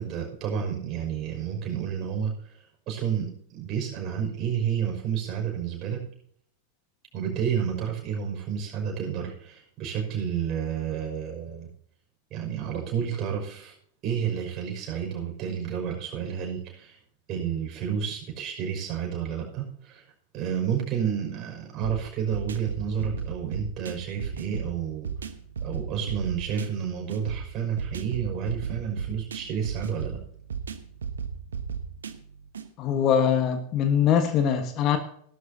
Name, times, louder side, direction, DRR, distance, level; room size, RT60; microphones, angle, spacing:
voice 1, 0.0-2.3 2.9-6.0 7.1-11.7 12.3-13.7 14.0-17.0 17.3-20.0 20.3-25.1 25.6-30.2, right 8 dB, 35° right, 0 dB, 5.9 m, -30 dB
sound 1, 21.8-32.7, right 6 dB, 70° right, 1.1 m, -35 dB
voice 2, 32.8-35.0, left 8 dB, 35° left, 8 dB, 1.5 m, -22 dB
17.0 x 12.5 x 2.8 m, 0.63 s
figure-of-eight pair, 90°, 0 cm